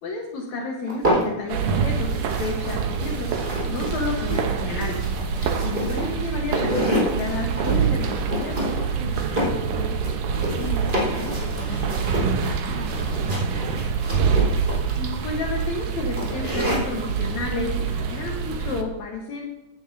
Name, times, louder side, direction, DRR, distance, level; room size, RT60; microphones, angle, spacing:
voice 1, 0.0-2.1 2.4-3.3 3.7-5.0 5.6-8.7 15.0-19.4, left 3 dB, 70° left, 0 dB, 2.6 m, -31 dB
sound 1, 0.9-1.7 2.0-17.0, equal, 20° right, 4.3 m, -29 dB
sound 2, 1.5-18.8, right 6 dB, 85° right, 2.5 m, -26 dB
voice 2, 9.3-13.9, left 3 dB, 50° left, 2 dB, 1.3 m, -38 dB
16.5 x 10.5 x 2.7 m, 0.97 s
omnidirectional pair, 3.4 m